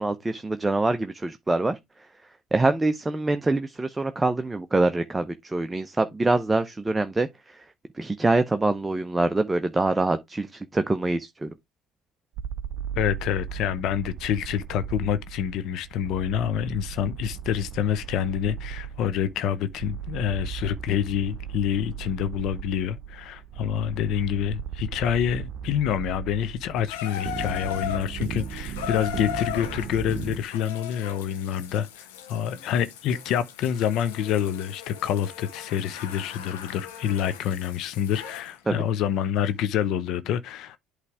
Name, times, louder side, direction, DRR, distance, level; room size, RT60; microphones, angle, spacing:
voice 1, 0.0-1.8 2.5-7.3 8.0-11.5 38.7-38.8, right 2 dB, 15° right, 0.7 m, -24 dB
sound 1, 12.4-30.4, right 8 dB, 60° right, 0.8 m, -36 dB
voice 2, 12.9-40.8, left 9 dB, 65° left, 0.7 m, -27 dB
Water tap faucet / Bathtub (filling or washing), 26.9-38.5 39.4-39.5, left 10 dB, 85° left, 1.4 m, -38 dB
8.3 x 3.3 x 4.8 m
hypercardioid pair, 75°, 0 cm